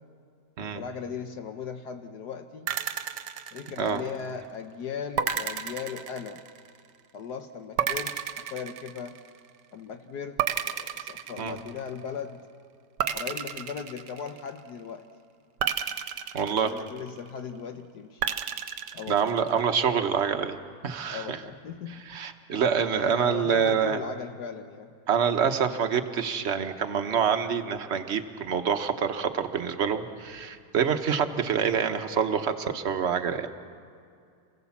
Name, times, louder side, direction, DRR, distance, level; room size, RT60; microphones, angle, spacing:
voice 1, 0.7-2.7 3.5-6.4 7.1-9.2 9.7-10.4 10.7-12.4 13.1-15.0 16.5-18.2 18.9-19.4 21.1-22.0 22.5-22.7 23.0-24.9, left 6 dB, 70° left, 6 dB, 1.5 m, -38 dB
sound 1, 2.7-4.3 5.2-6.8 7.8-9.5 10.4-12.0 13.0-14.7 15.6-17.3 18.2-19.6, right 9 dB, 75° right, 1.5 m, -32 dB
voice 2, 16.3-16.7 19.1-20.6 20.8-21.4 22.1-24.0 25.1-33.5, right 7 dB, 45° right, 7 dB, 1.2 m, -26 dB
28.0 x 17.0 x 7.2 m, 2.3 s
omnidirectional pair, 1.9 m